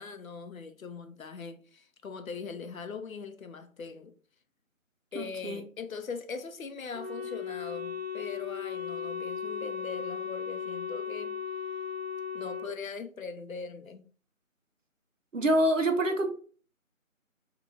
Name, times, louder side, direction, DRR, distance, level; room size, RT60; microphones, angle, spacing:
voice 1, 0.0-4.1 5.1-11.4 12.3-14.1, left 5 dB, 75° left, 0.6 m, -41 dB
voice 2, 5.1-5.6 15.3-16.3, right 1 dB, 65° right, 0.7 m, -26 dB
Wind instrument woodwind instrument, 6.9-12.7, left 7 dB, 55° left, 0.9 m, -36 dB
3.6 x 2.4 x 2.5 m
figure-of-eight pair, 170°, 42 cm